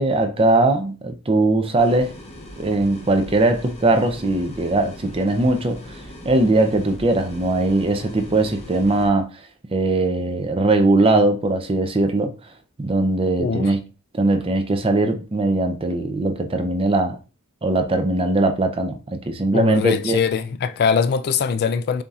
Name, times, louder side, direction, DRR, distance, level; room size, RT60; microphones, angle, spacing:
voice 1, 0.0-2.1 2.6-5.8 6.2-9.3 9.7-12.3 12.8-13.8 14.1-17.2 17.6-20.2, right 2 dB, 25° right, 0.5 m, -20 dB
sound 1, 1.8-9.1, left 1 dB, 30° left, 0.9 m, -39 dB
voice 2, 13.4-13.7 19.5-22.0, left 6 dB, 45° left, 0.3 m, -21 dB
7.0 x 2.7 x 2.4 m
head